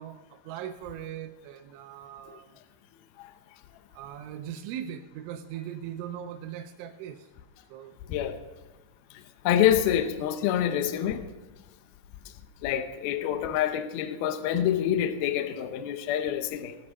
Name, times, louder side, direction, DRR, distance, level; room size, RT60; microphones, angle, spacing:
voice 1, 0.0-2.5 3.9-7.3 7.7-8.0, right 10 dB, 90° right, 5 dB, 3.1 m, -39 dB
voice 2, 9.4-11.3 12.6-16.8, left 10 dB, 85° left, 9 dB, 2.2 m, -26 dB
18.5 x 8.5 x 5.5 m, 1.2 s
omnidirectional pair, 5.5 m